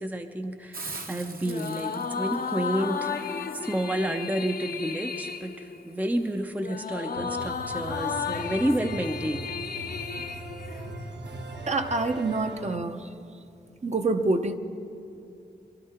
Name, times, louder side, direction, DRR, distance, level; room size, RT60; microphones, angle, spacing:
voice 1, 0.0-9.5, right 1 dB, 10° right, 6 dB, 0.6 m, -30 dB
Hiss, 0.7-6.4, right 3 dB, 55° right, 1.4 m, -45 dB
sound 1, 1.4-11.1, left 6 dB, 55° left, 0.7 m, -34 dB
sound 2, 7.1-12.8, right 2 dB, 80° right, 1.2 m, -39 dB
voice 2, 11.7-13.1 13.8-14.5, right 2 dB, 40° right, 6 dB, 0.9 m, -26 dB
23.0 x 12.5 x 4.4 m, 2.7 s
wide cardioid pair, 100°, 18 cm